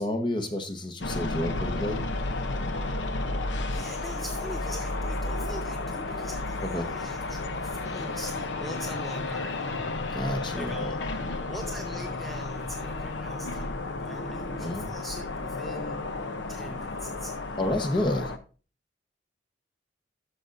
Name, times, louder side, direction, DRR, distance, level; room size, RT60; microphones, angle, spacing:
voice 1, 0.0-2.1 6.6-6.9 10.1-11.0 14.6-14.9 17.6-18.3, left 1 dB, 25° left, 5 dB, 1.0 m, -30 dB
sound 1, 1.0-18.4, left 2 dB, 80° left, 0.7 m, -32 dB
voice 2, 3.7-9.9 10.1-11.0 11.5-16.0 16.5-17.4, equal, ahead, 3 dB, 0.5 m, -43 dB
12.0 x 6.6 x 2.5 m, 0.36 s
head